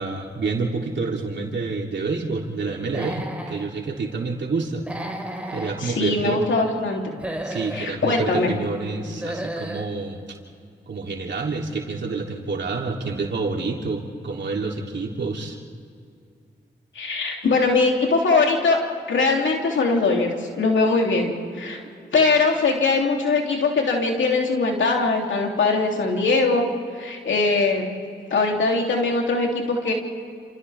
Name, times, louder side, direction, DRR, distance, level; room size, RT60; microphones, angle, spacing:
voice 1, 0.0-4.8 5.5-6.4 7.4-10.4 10.9-15.6, right 4 dB, 70° right, 0 dB, 3.2 m, -28 dB
Human voice / Animal, 2.8-3.6 4.8-5.8 7.0-7.9 9.0-9.9, right 1 dB, 5° right, 4.4 m, -33 dB
voice 2, 5.8-7.0 7.7-8.5 16.9-18.8 19.1-20.3 20.6-21.8 22.1-26.7 27.0-27.9 28.3-29.9, left 3 dB, 80° left, 0 dB, 3.2 m, -21 dB
28.5 x 28.0 x 3.6 m, 2.3 s
supercardioid pair, 40°, 19 cm